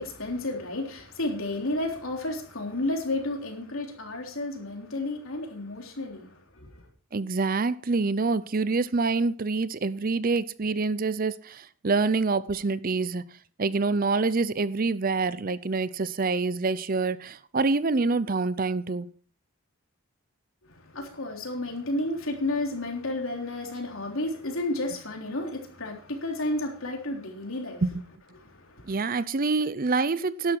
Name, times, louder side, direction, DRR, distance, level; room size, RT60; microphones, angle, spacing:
voice 1, 0.0-6.3 6.6-6.8 20.7-27.8 28.4-28.9, left 2 dB, 70° left, 3.6 m, -32 dB
voice 2, 7.1-13.2 13.6-19.1 27.8-28.0 28.9-30.6, right 3 dB, 40° right, 0.6 m, -26 dB
12.0 x 11.5 x 4.6 m
head